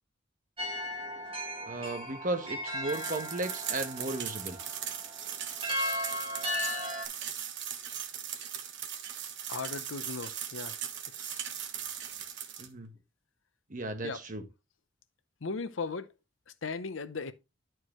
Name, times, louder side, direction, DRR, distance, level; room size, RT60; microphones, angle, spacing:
sound 1, 0.6-7.1, left 1 dB, 30° right, 1.5 m, -36 dB
voice 1, 1.7-4.6 12.6-12.9 13.7-14.4, right 2 dB, 45° right, 1.2 m, -35 dB
sound 2, 2.9-12.7, right 9 dB, 65° right, 1.2 m, -39 dB
voice 2, 9.5-10.8 11.2-11.4 14.0-14.2 15.4-16.1 16.6-17.3, left 4 dB, 85° left, 0.7 m, -37 dB
11.0 x 4.6 x 3.1 m
head